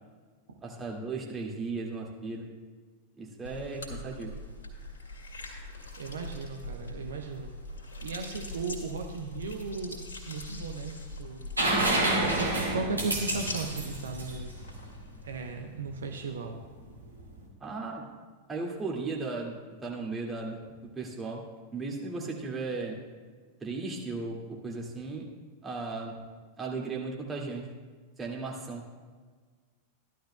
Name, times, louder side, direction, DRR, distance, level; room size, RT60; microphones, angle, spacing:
voice 1, 0.6-2.5 3.2-4.3 11.6-12.0 17.6-18.0 18.5-19.6 19.8-21.4 21.7-23.0 23.6-25.3 25.6-26.1 26.6-27.7 28.2-28.8, right 3 dB, 15° right, -1 dB, 2.1 m, -36 dB
sound 1, 3.4-15.6, left 2 dB, 65° left, 2.1 m, -42 dB
voice 2, 6.0-7.5 8.0-14.5 15.2-16.6, right 4 dB, 65° right, 4 dB, 0.8 m, -36 dB
sound 2, 11.6-15.3 17.1-17.2, right 1 dB, 85° right, 2.2 m, -28 dB
15.0 x 11.5 x 2.2 m, 1.5 s
figure-of-eight pair, 90°, 0 cm